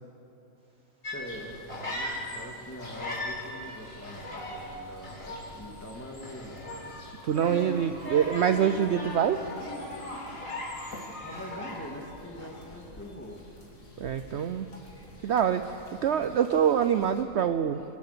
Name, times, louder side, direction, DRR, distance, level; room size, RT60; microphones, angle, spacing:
Bird, 0.6-16.9, right 1 dB, 85° right, 4.8 m, -55 dB
sound 1, 1.0-2.5 2.8-12.1 12.4-12.8, left 1 dB, 65° left, 4.2 m, -38 dB
voice 1, 1.1-6.7 11.2-13.4, equal, 10° left, 0 dB, 2.4 m, -43 dB
sound 2, 1.2-17.2, left 1 dB, 80° left, 3.2 m, -51 dB
voice 2, 7.2-9.4 14.0-14.7 15.2-17.8, right 8 dB, 60° right, 10 dB, 0.8 m, -25 dB
25.5 x 18.5 x 6.9 m, 2.9 s
omnidirectional pair, 1.4 m